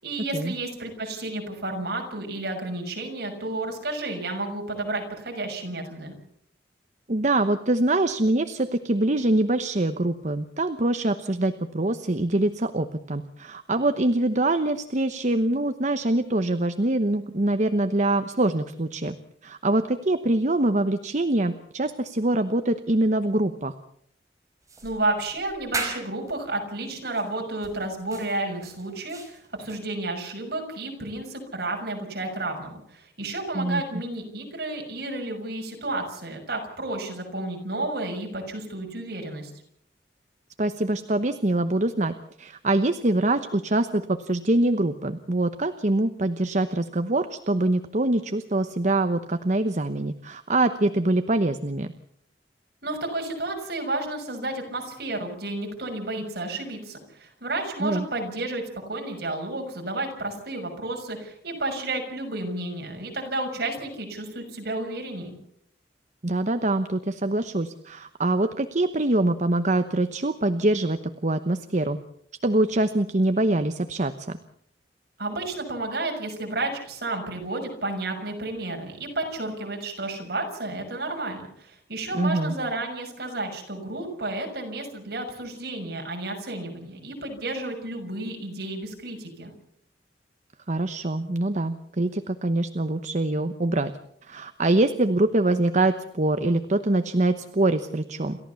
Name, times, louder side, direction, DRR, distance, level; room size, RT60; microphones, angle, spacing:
voice 1, 0.0-6.1 24.8-39.5 52.8-65.3 75.2-89.5, right 2 dB, 65° right, 3 dB, 6.4 m, -31 dB
voice 2, 7.1-19.1 19.4-23.7 33.5-33.8 40.6-51.9 57.8-58.1 66.2-72.0 72.4-74.4 82.1-82.5 90.7-93.9 94.2-98.4, right 2 dB, 45° right, 9 dB, 1.0 m, -24 dB
sound 1, 24.7-26.3 27.1-27.3 27.6-29.8, right 3 dB, 20° right, 4.9 m, -36 dB
28.5 x 14.0 x 7.1 m, 0.68 s
head